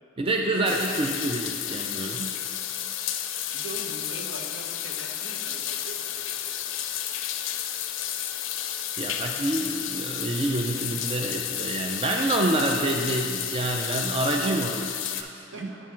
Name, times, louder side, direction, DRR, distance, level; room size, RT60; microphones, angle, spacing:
voice 1, 0.2-2.4 9.0-15.7, right 2 dB, 30° right, 1 dB, 0.3 m, -27 dB
sound 1, 0.6-15.2, left 10 dB, 70° left, 0.4 m, -32 dB
voice 2, 3.5-6.6 15.5-15.9, right 2 dB, 70° right, 1 dB, 0.8 m, -42 dB
9.3 x 3.6 x 4.4 m, 2.3 s
head